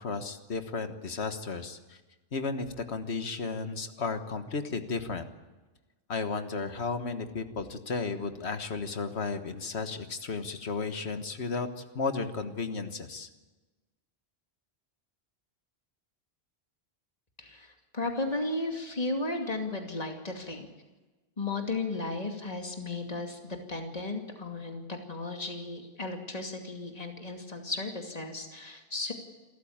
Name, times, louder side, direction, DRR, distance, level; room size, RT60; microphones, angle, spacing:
voice 1, 0.0-2.0 2.3-5.3 6.1-13.3, left 4 dB, 85° left, 8 dB, 1.7 m, -34 dB
voice 2, 17.4-20.7 21.4-29.1, left 2 dB, 35° left, 3 dB, 2.6 m, -35 dB
27.5 x 14.0 x 8.8 m, 1.2 s
omnidirectional pair, 1.1 m